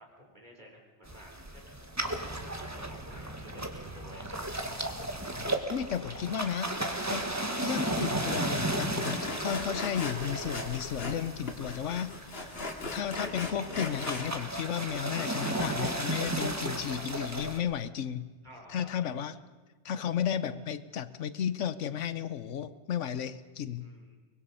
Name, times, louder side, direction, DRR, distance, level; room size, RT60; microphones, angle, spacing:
voice 1, 0.0-1.8 2.1-4.6 18.4-18.9 19.9-20.2 23.8-24.2, equal, 40° right, 0 dB, 4.4 m, -53 dB
sound 1, 1.1-17.6, right 1 dB, 15° right, 1.5 m, -35 dB
voice 2, 5.3-7.3 7.6-12.1 12.4-12.5 12.9-18.3 18.7-19.3 19.8-23.9, left 8 dB, 85° left, 14 dB, 1.2 m, -33 dB
Sawing, 8.0-8.1 8.4-8.5 9.0-11.2 11.5-14.3, left 3 dB, 55° left, 2.3 m, -38 dB
24.0 x 21.0 x 5.6 m, 1.3 s
omnidirectional pair, 1.2 m